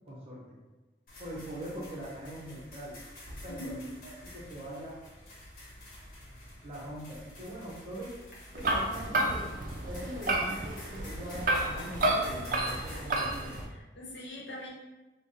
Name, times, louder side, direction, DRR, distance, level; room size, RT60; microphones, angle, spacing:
voice 1, 0.0-0.4 1.2-3.0 3.4-3.7 4.0-5.0 6.6-8.1 8.5-9.6 9.8-13.6, equal, 35° right, -5 dB, 1.0 m, -42 dB
sound 1, 1.1-13.6, left 1 dB, 50° left, 1.1 m, -49 dB
voice 2, 3.4-3.8 13.7-14.7, left 1 dB, 80° left, -4 dB, 0.9 m, -42 dB
sound 2, 8.5-13.7, right 1 dB, 50° right, 0.4 m, -31 dB
3.4 x 2.2 x 4.0 m, 1.1 s
head